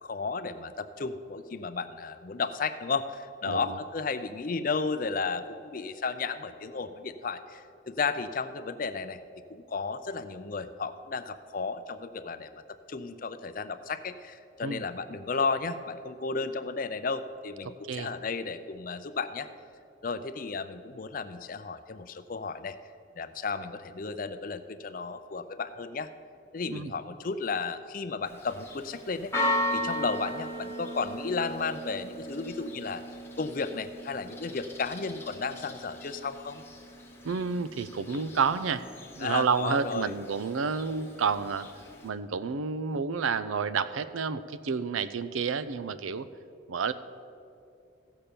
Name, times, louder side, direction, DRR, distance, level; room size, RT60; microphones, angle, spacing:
voice 1, 0.0-9.2 9.5-12.6 12.9-19.5 20.0-22.8 23.2-26.1 26.5-29.3 29.7-33.0 33.4-36.6 39.2-40.1, left 4 dB, 45° left, 11 dB, 0.5 m, -33 dB
voice 2, 3.5-3.8 14.6-14.8 17.9-18.1 26.7-26.9 37.2-38.8 39.2-41.7 42.0-46.3 46.7-46.9, right 5 dB, 85° right, 13 dB, 0.5 m, -30 dB
Church bell, 28.3-42.1, equal, 10° left, 1.0 m, -37 dB
15.5 x 5.7 x 6.8 m, 2.6 s
head